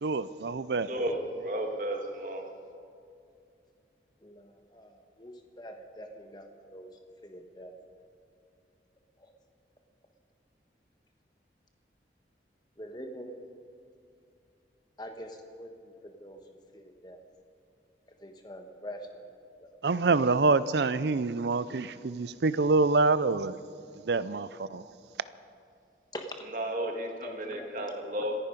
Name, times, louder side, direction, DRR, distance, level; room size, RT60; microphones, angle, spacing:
voice 1, 0.0-0.9 19.8-23.6 24.1-24.8, right 3 dB, 75° right, 16 dB, 0.5 m, -26 dB
voice 2, 0.9-2.4 26.4-28.4, right 1 dB, 45° right, 2 dB, 1.9 m, -33 dB
voice 3, 4.2-6.5 6.7-6.9 7.2-7.7 12.8-13.3 15.0-16.4 16.7-17.2 18.2-19.2 19.6-19.7 20.1-20.2 26.1-26.3 27.2-27.7, equal, 25° left, 5 dB, 1.3 m, -44 dB
27.0 x 10.0 x 5.2 m, 2.5 s
head